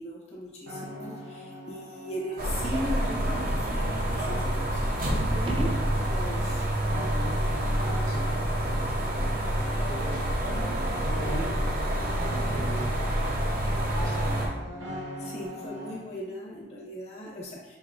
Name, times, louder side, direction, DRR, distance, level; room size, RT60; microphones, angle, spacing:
voice 1, 0.0-5.7 6.0-6.7 15.2-17.8, equal, 35° left, -4 dB, 0.8 m, -38 dB
sound 1, 0.7-16.1, equal, 85° right, 0.8 m, -40 dB
sound 2, 2.4-14.5, right 1 dB, 50° right, 0.7 m, -28 dB
sound 3, 5.3-6.6 11.4-11.5, right 2 dB, 30° right, 0.3 m, -37 dB
voice 2, 7.8-10.5 10.9-11.4 12.1-14.4, equal, 55° left, -3 dB, 1.1 m, -41 dB
6.2 x 2.7 x 2.5 m, 1.2 s
head